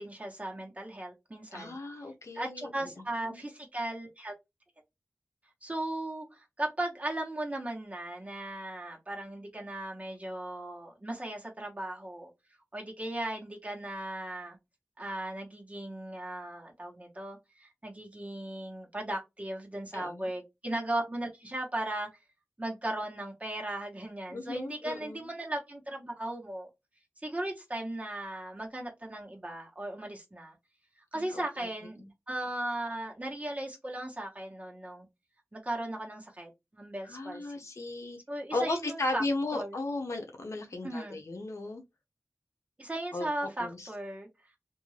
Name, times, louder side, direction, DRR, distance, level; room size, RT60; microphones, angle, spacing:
voice 1, 0.0-1.8 2.3-4.3 5.6-12.3 12.7-14.6 15.0-22.1 22.6-26.7 27.2-30.5 31.1-35.1 35.5-37.6 38.3-39.2 39.5-39.8 40.8-41.2 42.8-44.3, right 1 dB, 30° right, 1.3 m, -37 dB
voice 2, 1.5-2.7 3.2-3.4 19.9-20.3 24.3-25.3 31.1-31.4 32.0-32.1 37.1-38.2 38.5-41.8 43.1-43.3 43.6-43.9, left 2 dB, 75° left, 0.7 m, -35 dB
2.6 x 2.5 x 3.2 m
wide cardioid pair, 65°, 5 cm